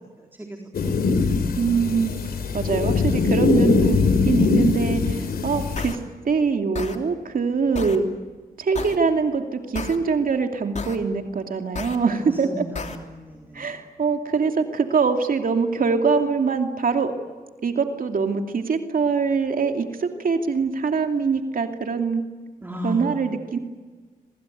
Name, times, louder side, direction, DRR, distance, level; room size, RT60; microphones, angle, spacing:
voice 1, 0.2-0.9 12.2-13.9 22.6-23.3, left 1 dB, 15° right, 2 dB, 4.0 m, -35 dB
sound 1, 0.7-5.9, left 4 dB, 80° left, 3.2 m, -21 dB
voice 2, 1.6-2.2 2.5-6.0 6.2-8.1 8.6-12.6 13.5-17.1 17.6-22.2 22.8-23.6, right 5 dB, 65° right, 5 dB, 2.6 m, -23 dB
sound 2, 5.8-6.0 6.7-7.0 7.7-8.0 8.7-9.0 9.7-10.0 10.8-11.0 11.8-12.0 12.8-13.0, left 4 dB, 50° left, 3.1 m, -31 dB
27.0 x 23.5 x 9.3 m, 1.4 s
cardioid pair, 85°, 16 cm